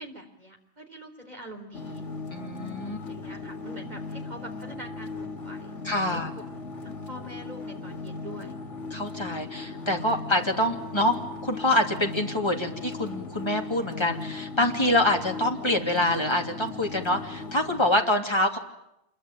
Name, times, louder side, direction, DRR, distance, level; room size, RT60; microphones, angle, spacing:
voice 1, 0.0-2.0 2.8-5.7 6.1-6.4 6.8-8.5, right 1 dB, 30° right, 4 dB, 4.0 m, -44 dB
sound 1, 1.7-17.9, left 3 dB, 65° left, 2.5 m, -38 dB
voice 2, 2.3-3.0 5.8-6.3 8.9-18.6, left 1 dB, 20° left, 2 dB, 3.0 m, -26 dB
27.0 x 22.5 x 9.1 m, 0.82 s
omnidirectional pair, 1.3 m